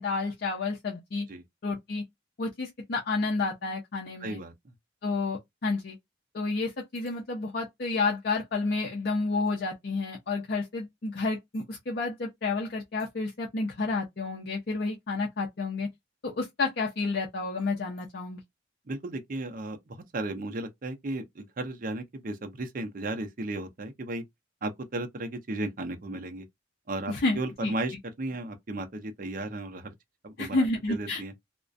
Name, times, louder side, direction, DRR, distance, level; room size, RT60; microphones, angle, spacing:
voice 1, 0.0-1.3 1.6-2.0 2.4-4.4 5.0-6.0 6.3-15.9 16.2-18.4 27.1-27.7 30.4-31.2, left 3 dB, 55° left, 0.5 m, -30 dB
voice 2, 4.2-4.7 18.9-24.2 24.6-26.5 26.9-29.9 30.2-31.3, right 2 dB, 45° right, 0.5 m, -35 dB
2.4 x 2.1 x 2.5 m
head